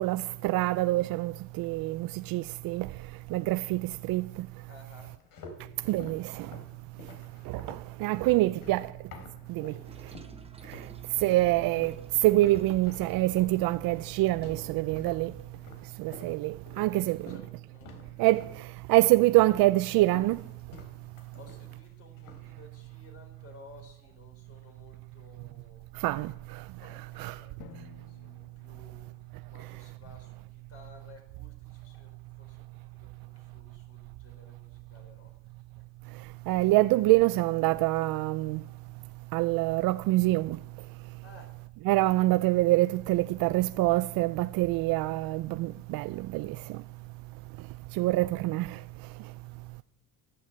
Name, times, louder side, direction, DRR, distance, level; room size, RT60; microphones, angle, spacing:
voice 1, 0.0-2.9 3.3-4.5 5.9-6.5 7.5-8.9 9.5-9.7 10.7-10.8 11.2-12.0 12.2-15.3 16.0-17.2 18.2-20.4 25.9-26.6 26.9-27.4 36.5-38.6 39.3-40.6 41.9-46.8 47.9-48.8, right 18 dB, 60° right, 0.5 m, -26 dB
voice 2, 4.7-5.2 8.1-8.4 9.6-10.3 16.3-16.4 16.9-18.3 21.1-25.9 26.8-36.2 41.2-41.5, left 3 dB, 35° left, 4.0 m, -56 dB
sound 1, 5.0-9.8 10.1-10.9 11.2-17.5 17.8-18.6 18.9-19.7 20.0-21.9 22.2-22.5, left 3 dB, 55° left, 3.7 m, -49 dB
Toilet flush, 9.8-15.5, right 4 dB, 15° right, 1.0 m, -51 dB
Drum, 27.6-30.1, left 7 dB, 90° left, 1.8 m, -54 dB
15.0 x 11.5 x 7.5 m
cardioid pair, 145°, 41 cm